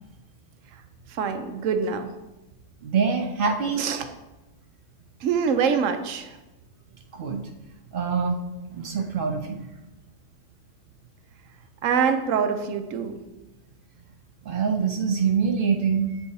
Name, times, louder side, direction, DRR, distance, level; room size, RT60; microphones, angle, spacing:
voice 1, 1.1-2.1 3.8-4.1 5.2-6.4 11.8-13.2, right 6 dB, 90° right, 8 dB, 1.0 m, -25 dB
voice 2, 2.8-3.9 7.1-7.4 7.9-8.4 8.7-9.7 14.4-16.2, right 6 dB, 60° right, 5 dB, 0.6 m, -25 dB
8.2 x 4.6 x 2.7 m, 1.0 s
omnidirectional pair, 1.3 m